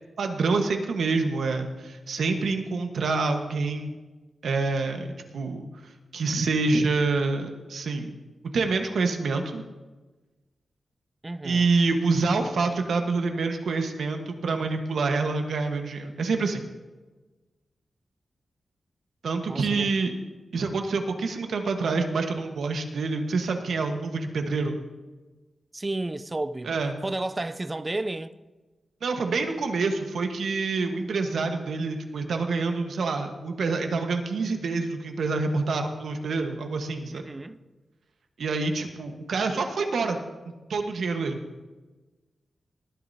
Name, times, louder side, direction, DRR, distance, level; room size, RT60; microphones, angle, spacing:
voice 1, 0.2-4.0 4.4-8.1 8.5-9.6 11.4-16.6 19.2-20.1 20.5-24.8 26.6-27.0 29.0-37.3 38.4-40.2 40.7-41.4, right 3 dB, 85° right, 1.3 m, -27 dB
voice 2, 11.2-11.7 19.5-19.9 25.7-26.7 27.0-28.3 37.1-37.6, right 2 dB, 25° right, 0.5 m, -32 dB
19.5 x 11.0 x 2.8 m
wide cardioid pair, 85°, 0 cm